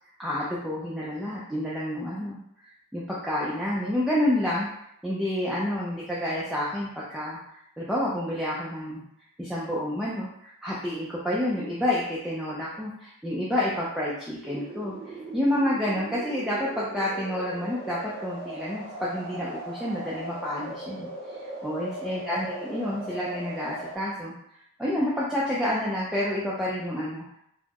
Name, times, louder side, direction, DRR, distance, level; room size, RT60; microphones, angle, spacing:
voice 1, 0.2-4.7 5.0-9.0 9.4-24.3 24.8-27.4, left 1 dB, ahead, -7 dB, 0.4 m, -29 dB
sound 1, 14.4-24.0, right 1 dB, 55° right, 0.7 m, -39 dB
4.1 x 2.0 x 2.8 m, 0.75 s
head